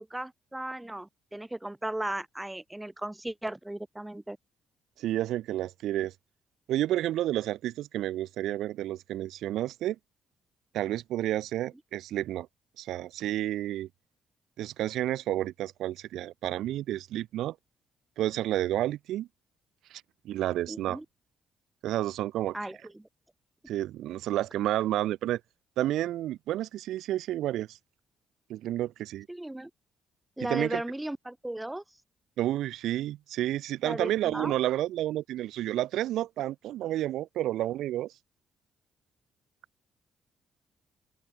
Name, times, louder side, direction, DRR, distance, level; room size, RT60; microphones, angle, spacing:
voice 1, 0.0-4.4 20.7-21.1 22.5-23.1 29.3-29.7 30.4-31.8 33.8-34.5, right 1 dB, 10° right, 1.8 m, -36 dB
voice 2, 5.0-6.1 6.7-10.0 10.7-12.5 12.8-13.9 14.6-17.5 18.2-19.3 19.9-21.0 21.8-22.6 23.7-25.4 25.8-27.8 28.5-29.3 30.4-30.8 32.4-38.1, right 13 dB, 85° right, 1.6 m, -30 dB
open air
cardioid pair, 90°, 0 cm